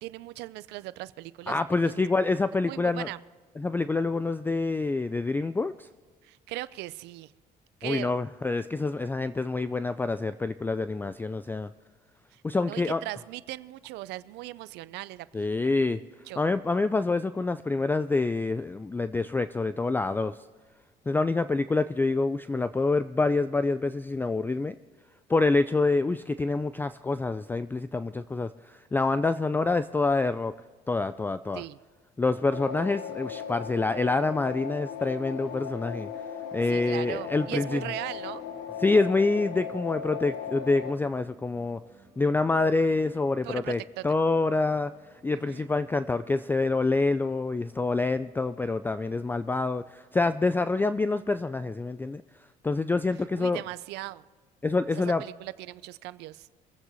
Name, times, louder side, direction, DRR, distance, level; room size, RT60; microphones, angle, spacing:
voice 1, 0.0-2.1 2.6-3.2 6.2-7.3 7.8-8.1 12.3-15.7 16.3-16.4 31.5-31.8 36.7-38.4 43.4-44.1 45.3-45.7 53.4-54.2 55.0-56.5, right 17 dB, 90° right, 17 dB, 0.5 m, -39 dB
voice 2, 1.5-3.1 3.6-5.9 7.8-11.7 12.4-13.0 15.3-16.0 16.4-20.4 21.1-24.8 25.3-30.5 30.9-31.6 32.2-36.1 36.5-37.8 38.8-41.8 42.2-44.9 45.2-52.2 52.6-53.6 54.6-55.2, left 3 dB, 10° left, 13 dB, 0.3 m, -26 dB
sound 1, 32.5-40.9, left 7 dB, 80° left, 1.1 m, -37 dB
sound 2, 37.0-49.5, right 3 dB, 20° right, 4.7 m, -58 dB
23.5 x 8.0 x 4.0 m, 1.5 s
cardioid pair, 110°, 17 cm